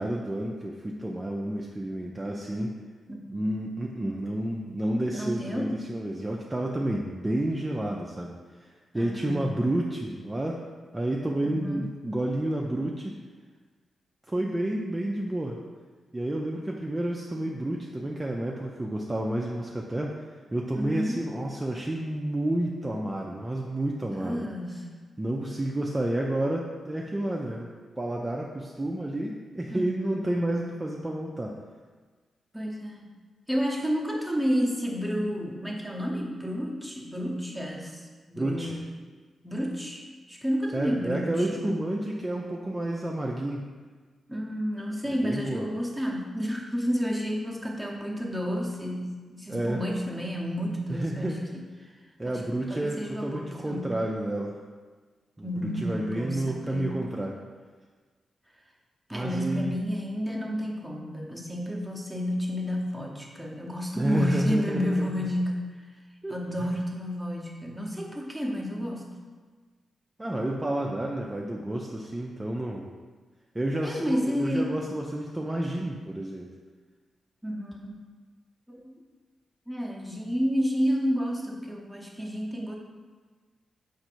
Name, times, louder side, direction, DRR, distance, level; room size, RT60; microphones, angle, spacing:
voice 1, 0.0-2.8 3.3-10.6 10.9-13.2 14.3-15.6 16.1-20.3 20.5-24.5 25.2-27.7 28.0-31.6 38.4-38.8 40.7-43.6 45.1-45.7 49.5-49.8 50.9-51.9 52.2-54.6 55.4-57.4 59.1-59.8 63.9-65.2 66.2-66.7 70.2-72.9 73.5-76.5, right 1 dB, 20° right, -1 dB, 0.4 m, -30 dB
voice 2, 3.1-3.4 5.1-5.7 8.9-9.5 11.4-11.9 20.7-21.2 24.1-24.8 29.7-30.3 32.5-33.1 33.5-38.9 39.4-40.0 40.3-41.7 44.3-51.6 52.3-52.4 52.7-53.9 55.4-56.9 59.1-65.6 66.3-69.1 73.8-74.7 77.4-78.0 78.7-78.9 79.7-82.8, equal, ahead, -2 dB, 0.8 m, -31 dB
4.5 x 2.5 x 4.4 m, 1.4 s
cardioid pair, 55°, 0 cm